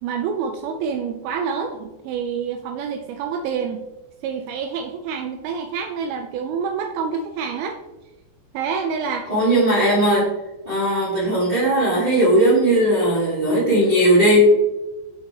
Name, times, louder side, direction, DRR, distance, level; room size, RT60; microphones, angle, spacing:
voice 1, 0.0-3.8 4.2-7.8 8.5-9.3, right 6 dB, 90° right, 4 dB, 2.1 m, -27 dB
voice 2, 9.3-10.2 10.6-14.4, right 1 dB, 55° right, -9 dB, 0.6 m, -17 dB
5.9 x 5.1 x 4.2 m, 1.0 s
omnidirectional pair, 5.0 m